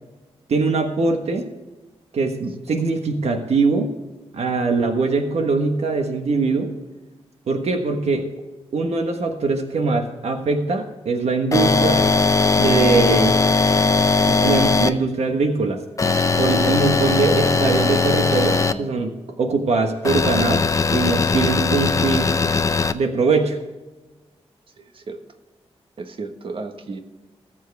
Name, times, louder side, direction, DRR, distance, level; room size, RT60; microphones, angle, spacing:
voice 1, 0.5-1.5 2.1-3.9 4.3-6.7 7.5-8.3 8.7-12.0 12.6-13.3 14.3-15.8 16.4-20.7 20.9-22.3 22.9-23.6, right 3 dB, 75° right, 5 dB, 1.3 m, -22 dB
sound 1, 11.5-14.9 16.0-18.7 20.0-22.9, left 3 dB, 30° left, 0.6 m, -19 dB
voice 2, 24.8-25.2 26.0-27.0, right 3 dB, 55° right, 6 dB, 1.4 m, -34 dB
19.0 x 7.5 x 3.5 m, 1.2 s
wide cardioid pair, 135°, 11 cm